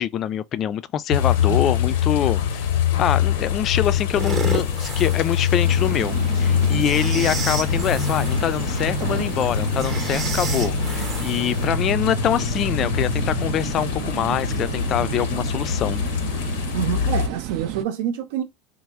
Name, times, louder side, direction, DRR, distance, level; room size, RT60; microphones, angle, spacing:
voice 1, 0.0-2.7 3.0-16.0, left 10 dB, 40° left, 0.3 m, -25 dB
sound 1, 1.1-17.3, left 8 dB, 80° left, 0.6 m, -24 dB
sound 2, 4.1-11.7, right 5 dB, 30° right, 0.8 m, -33 dB
sound 3, 5.6-17.8, right 12 dB, 60° right, 0.4 m, -32 dB
voice 2, 16.7-18.4, right 10 dB, 75° right, 0.8 m, -27 dB
3.2 x 2.0 x 3.5 m
supercardioid pair, 120°, 0 cm